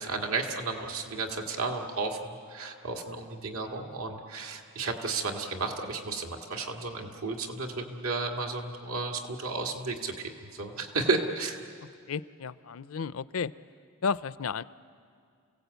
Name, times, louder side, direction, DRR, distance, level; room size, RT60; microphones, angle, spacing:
voice 1, 0.0-11.6, right 3 dB, 85° right, 1 dB, 2.2 m, -33 dB
voice 2, 12.1-13.5 14.0-14.6, left 5 dB, 75° left, 17 dB, 0.5 m, -32 dB
29.5 x 17.5 x 8.1 m, 2.3 s
head